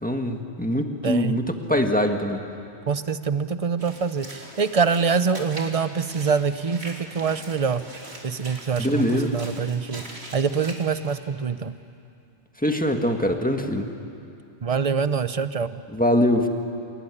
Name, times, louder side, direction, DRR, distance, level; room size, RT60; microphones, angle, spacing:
voice 1, 0.0-2.4 8.8-9.4 12.6-13.9 15.9-16.5, left 1 dB, 5° left, 4 dB, 1.7 m, -23 dB
voice 2, 1.0-1.4 2.9-7.8 8.2-10.0 10.3-11.8 14.6-15.8, right 5 dB, 35° right, 12 dB, 0.7 m, -25 dB
Walk footsteps / Splash splatter, 3.8-11.2, right 1 dB, 60° right, 3.3 m, -41 dB
27.5 x 19.5 x 10.0 m, 2.6 s
omnidirectional pair, 1.2 m